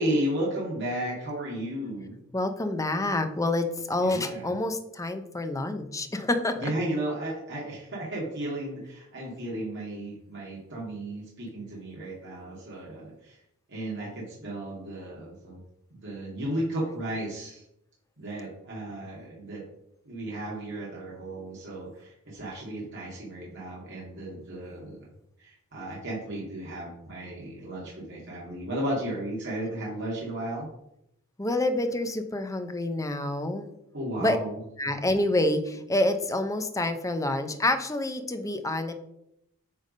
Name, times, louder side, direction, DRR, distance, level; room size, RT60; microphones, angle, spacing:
voice 1, 0.0-2.2 3.9-4.5 6.0-6.1 6.6-13.4 13.7-15.6 15.9-17.6 18.2-19.6 20.1-25.1 25.4-30.7 33.9-34.6, right 1 dB, 55° right, -5 dB, 2.1 m, -34 dB
voice 2, 2.3-6.6 31.4-33.7 34.2-34.4 34.8-38.9, left 1 dB, 15° left, 7 dB, 0.7 m, -27 dB
9.1 x 3.5 x 5.4 m, 0.79 s
head